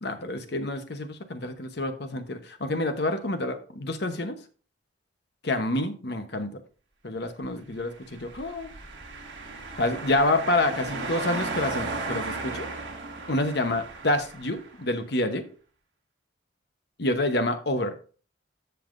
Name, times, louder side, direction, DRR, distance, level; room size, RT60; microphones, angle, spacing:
voice 1, 0.0-4.4 5.4-6.6 7.0-8.7 9.8-12.7 13.3-15.5 17.0-18.1, left 2 dB, 55° left, 8 dB, 1.0 m, -28 dB
sound 1, 8.1-14.8, right 3 dB, 60° right, 2.1 m, -35 dB
14.5 x 5.7 x 2.6 m, 0.39 s
head